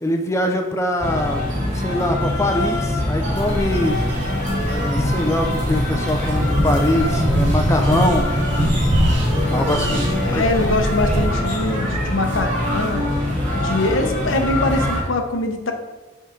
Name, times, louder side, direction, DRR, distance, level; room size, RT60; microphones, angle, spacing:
voice 1, 0.0-1.4 1.8-4.0 4.7-8.3 9.5-10.7, left 1 dB, 15° left, 4 dB, 0.4 m, -23 dB
sound 1, 1.0-15.0, left 1 dB, 40° right, 2.0 m, -23 dB
sound 2, 3.3-11.3, right 1 dB, 65° right, 1.1 m, -25 dB
voice 2, 9.4-13.0 13.6-15.7, left 2 dB, 80° left, 4 dB, 0.8 m, -23 dB
5.3 x 3.7 x 5.1 m, 1.1 s
head